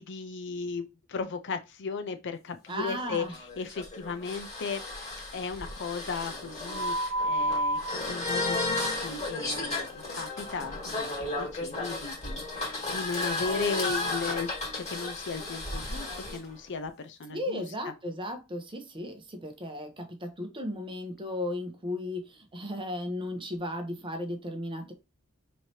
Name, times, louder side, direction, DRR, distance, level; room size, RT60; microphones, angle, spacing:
voice 1, 0.0-3.3 3.6-4.8 5.3-17.6, left 5 dB, 55° left, 0.6 m, -36 dB
sound 1, 2.7-16.4, left 1 dB, 30° left, 1.9 m, -33 dB
voice 2, 2.7-3.3 17.3-24.9, left 1 dB, 25° right, 0.8 m, -35 dB
4.7 x 3.1 x 2.7 m
head